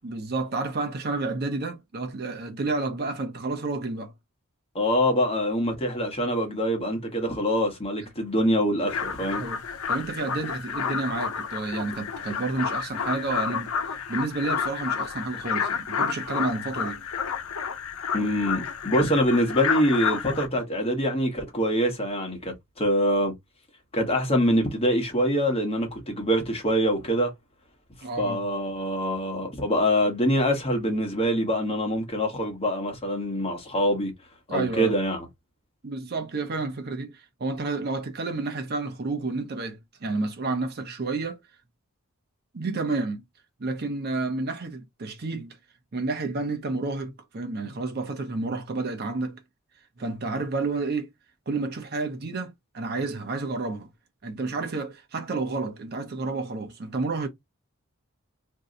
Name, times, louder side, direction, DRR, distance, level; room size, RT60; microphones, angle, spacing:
voice 1, 0.0-4.1 9.4-9.6 9.9-13.7 14.1-17.1 28.0-28.4 34.5-35.0 35.8-41.4 42.5-43.2 43.6-45.6 45.9-49.4 50.0-51.1 51.5-53.9 54.2-57.3, right 3 dB, 50° right, 0.7 m, -30 dB
voice 2, 4.7-9.4 18.1-23.3 23.9-27.3 28.2-34.1 34.5-35.2, equal, 30° left, 1.0 m, -25 dB
sound 1, 8.9-20.5, left 6 dB, 85° left, 0.6 m, -30 dB
2.7 x 2.2 x 3.7 m
head